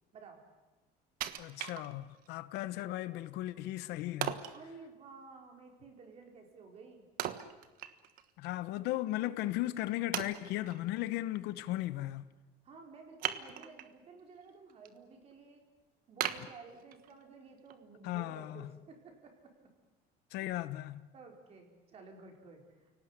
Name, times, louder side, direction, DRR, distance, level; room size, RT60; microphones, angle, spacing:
Wood, 1.2-2.3 2.8-2.9 4.2-4.6 7.2-8.3 8.6-8.7 9.4-9.5 10.1-10.8 13.2-14.0 14.4-14.9 15.3-15.4 16.2-17.2 17.7-17.8, right 11 dB, 55° right, 1.4 m, -38 dB
voice 1, 1.4-4.4 8.4-12.2 18.0-18.7 20.3-21.1, left 15 dB, 70° left, 1.1 m, -36 dB
voice 2, 4.5-7.1 12.6-15.6 16.1-19.7 21.1-22.9, right 4 dB, 35° right, 4.9 m, -53 dB
29.5 x 18.0 x 10.0 m
cardioid pair, 160°, 18 cm